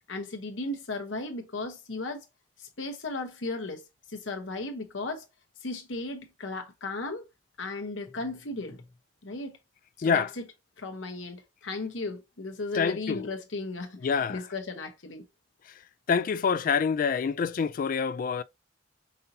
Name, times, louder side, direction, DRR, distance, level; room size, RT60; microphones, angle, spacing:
voice 1, 0.1-2.2 2.6-3.8 4.1-5.3 5.6-7.2 7.6-8.8 9.2-9.6 10.0-10.4 10.8-14.0 14.3-15.2, left 3 dB, 75° left, 1.0 m, -35 dB
voice 2, 12.7-13.3 14.0-14.4 16.1-18.4, left 6 dB, 45° left, 0.3 m, -26 dB
5.4 x 2.8 x 2.7 m
head